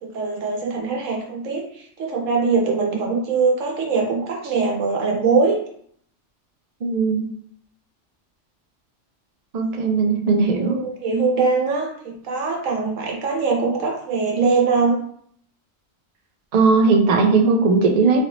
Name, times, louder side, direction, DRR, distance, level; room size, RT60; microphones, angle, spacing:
voice 1, 0.0-5.6 10.6-15.0, right 4 dB, 85° right, 0 dB, 1.2 m, -22 dB
voice 2, 6.8-7.3 9.5-10.8 16.5-18.2, right 4 dB, 60° right, 2 dB, 0.4 m, -18 dB
3.1 x 2.7 x 2.9 m, 0.62 s
omnidirectional pair, 1.3 m